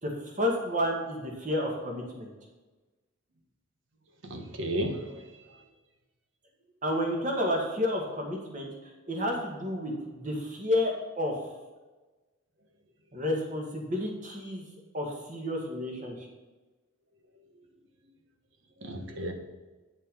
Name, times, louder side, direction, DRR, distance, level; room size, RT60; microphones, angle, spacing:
voice 1, 0.0-2.3 6.8-11.4 13.1-14.6 14.9-16.3, left 1 dB, 40° right, 1 dB, 2.0 m, -31 dB
voice 2, 4.2-5.3 18.8-19.3, right 1 dB, 65° right, 5 dB, 1.3 m, -33 dB
9.4 x 6.3 x 5.5 m, 1.2 s
head